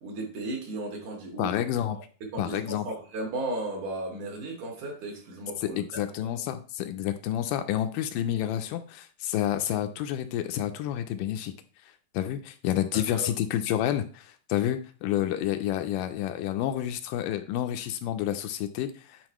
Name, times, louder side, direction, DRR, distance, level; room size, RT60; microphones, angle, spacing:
voice 1, 0.0-1.6 2.3-6.0 13.1-13.3, right 2 dB, 65° right, 0 dB, 3.1 m, -35 dB
voice 2, 1.4-2.0 2.4-2.9 5.6-11.5 12.1-19.2, left 11 dB, 80° left, 8 dB, 2.1 m, -29 dB
9.6 x 4.3 x 3.0 m, 0.39 s
omnidirectional pair, 4.0 m